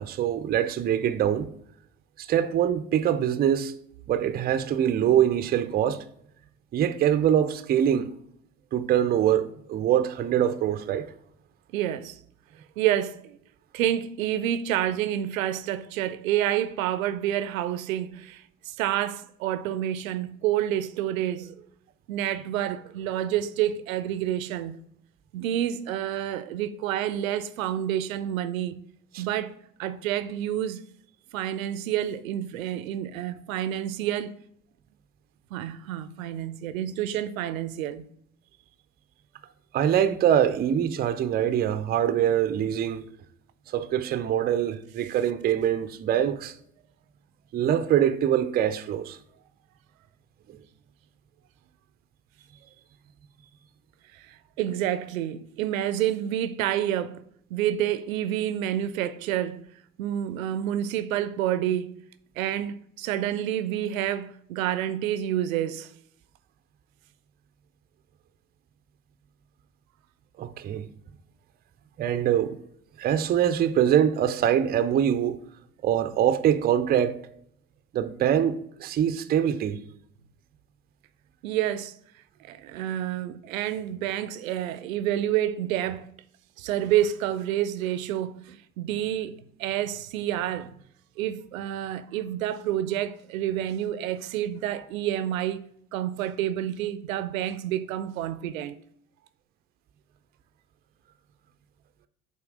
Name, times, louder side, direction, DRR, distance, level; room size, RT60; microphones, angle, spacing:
voice 1, 0.0-1.5 2.2-3.7 4.1-6.0 6.7-8.1 8.7-11.1 29.1-29.2 39.7-43.1 43.7-46.5 47.5-49.2 70.4-70.9 72.0-72.6 73.0-75.4 75.8-77.2 77.9-79.8, right 10 dB, 25° right, 0.4 m, -24 dB
voice 2, 11.7-12.2 12.8-13.4 13.7-21.7 22.1-24.8 25.3-28.8 29.2-30.8 31.3-34.3 35.5-38.1 54.1-57.2 57.5-59.6 60.0-61.9 62.4-65.9 81.4-81.9 82.4-86.1 86.6-90.7 91.2-98.8, right 11 dB, 75° right, 0.5 m, -28 dB
7.6 x 2.9 x 4.9 m
figure-of-eight pair, 60°, 41 cm